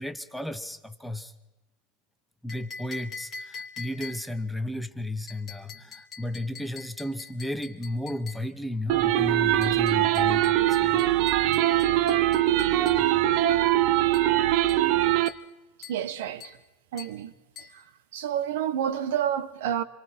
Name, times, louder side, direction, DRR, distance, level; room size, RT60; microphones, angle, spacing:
voice 1, 0.0-1.3 2.4-11.3 13.0-13.1, left 1 dB, ahead, 0.8 m, -34 dB
sound 1, 2.5-4.5 5.3-8.5 9.6-13.1 14.1-14.4 14.7-14.9 15.3-15.5 15.8-16.1 16.4-16.6 17.0-17.2 17.6-17.8, left 5 dB, 15° left, 2.7 m, -44 dB
sound 2, 8.9-15.3, right 14 dB, 45° right, 0.7 m, -22 dB
voice 2, 15.8-16.6 16.9-17.3 17.6-19.8, right 9 dB, 75° right, 1.4 m, -30 dB
27.0 x 26.0 x 4.5 m
supercardioid pair, 175°, 0 cm